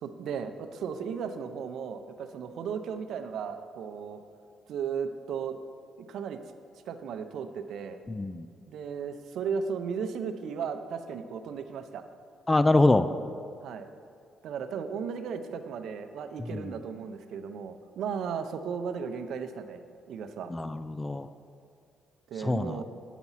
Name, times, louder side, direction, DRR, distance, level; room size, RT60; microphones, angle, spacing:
voice 1, 0.0-4.2 4.7-5.6 6.1-6.4 6.9-8.0 8.7-12.0 13.6-13.9 14.4-19.8 20.1-20.5 22.3-22.8, right 6 dB, 75° right, 8 dB, 0.6 m, -35 dB
voice 2, 8.1-8.5 12.5-13.1 16.5-16.7 20.5-21.3 22.4-22.8, left 2 dB, 20° left, 12 dB, 0.3 m, -24 dB
9.1 x 6.0 x 5.6 m, 2.4 s
cardioid pair, 90°, 0 cm